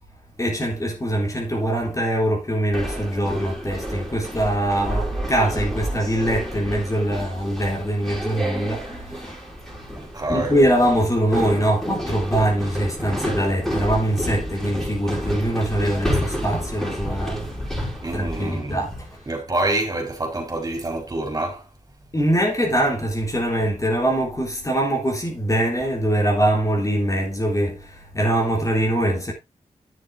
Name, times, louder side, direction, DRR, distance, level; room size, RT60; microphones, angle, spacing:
voice 1, 0.4-9.5 10.3-17.9 18.1-19.0 22.1-29.3, right 1 dB, 25° left, 3.6 m, -23 dB
sound 1, 2.7-19.2, equal, 5° left, 5.1 m, -30 dB
voice 2, 10.0-10.6 18.0-18.8 19.3-21.7, right 2 dB, 30° right, 4.7 m, -26 dB
10.5 x 7.7 x 4.1 m
wide cardioid pair, 120°, 13 cm